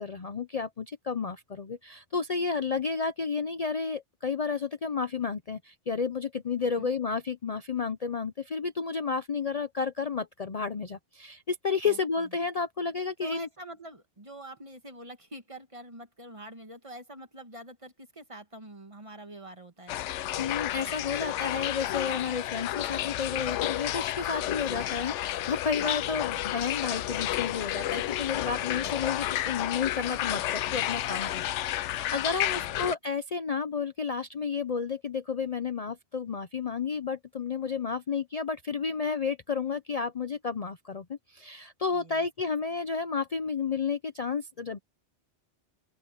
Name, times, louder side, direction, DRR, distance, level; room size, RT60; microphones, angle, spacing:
voice 1, 0.0-13.5 20.4-44.8, left 5 dB, 40° left, 0.7 m, -31 dB
voice 2, 11.8-12.4 13.2-20.0 25.8-26.4 28.7-29.2 32.2-33.0 41.9-42.3, right 1 dB, 30° right, 1.8 m, -46 dB
sound 1, 19.9-32.9, left 13 dB, 90° left, 0.9 m, -31 dB
open air
omnidirectional pair, 1.2 m